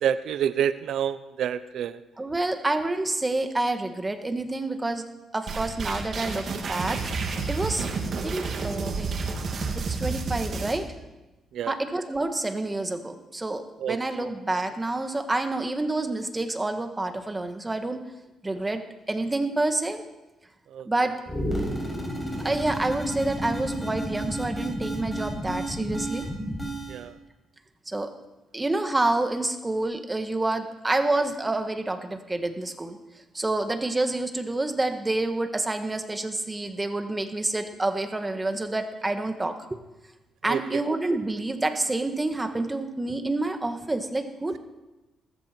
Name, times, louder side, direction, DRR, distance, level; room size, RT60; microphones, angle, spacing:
voice 1, 0.0-2.0 11.5-11.8 13.8-14.0 20.7-20.9 26.9-27.1 40.5-40.6, right 9 dB, 75° right, 14 dB, 0.6 m, -27 dB
voice 2, 2.2-5.0 5.3-7.9 8.2-9.1 9.7-10.9 11.7-18.0 18.4-18.8 19.1-20.0 20.8-21.2 22.4-26.3 27.9-28.1 28.5-33.0 33.3-39.8 40.4-44.6, right 2 dB, 20° right, 7 dB, 1.6 m, -28 dB
sound 1, 5.5-10.8, right 4 dB, 55° right, 2.3 m, -30 dB
sound 2, 21.2-27.0, equal, 10° left, 6.4 m, -31 dB
20.5 x 14.0 x 4.5 m, 1.0 s
cardioid pair, 90°, 0 cm